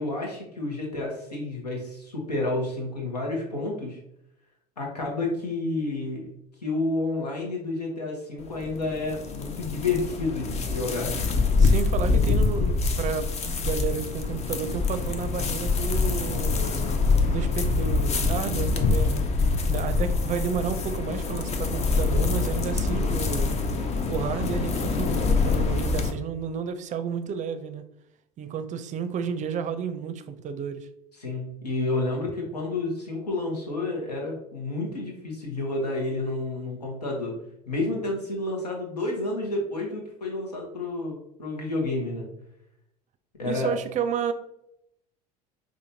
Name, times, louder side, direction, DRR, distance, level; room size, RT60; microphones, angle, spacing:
voice 1, 0.0-4.0 4.8-6.3 6.6-11.2 31.2-37.4 37.7-42.3 43.4-43.7, left 2 dB, 90° left, -1 dB, 1.0 m, -30 dB
sound 1, 8.4-26.1, left 4 dB, 35° left, 0.6 m, -25 dB
voice 2, 11.5-17.0 17.3-19.3 19.7-23.5 24.1-27.8 28.4-30.9 43.5-44.3, right 7 dB, 40° right, 9 dB, 0.5 m, -31 dB
5.0 x 2.5 x 2.7 m, 0.79 s
hypercardioid pair, 65°, 20 cm